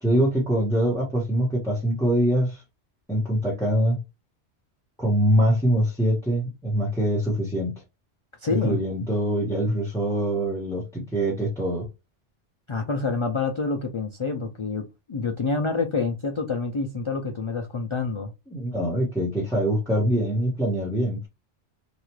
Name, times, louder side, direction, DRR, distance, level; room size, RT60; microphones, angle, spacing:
voice 1, 0.0-2.6 3.1-4.0 5.0-7.8 8.6-11.8 18.5-21.3, equal, 5° left, 1.0 m, -24 dB
voice 2, 8.4-8.8 12.7-18.3, left 4 dB, 55° left, 0.3 m, -27 dB
3.0 x 2.4 x 3.0 m
omnidirectional pair, 1.1 m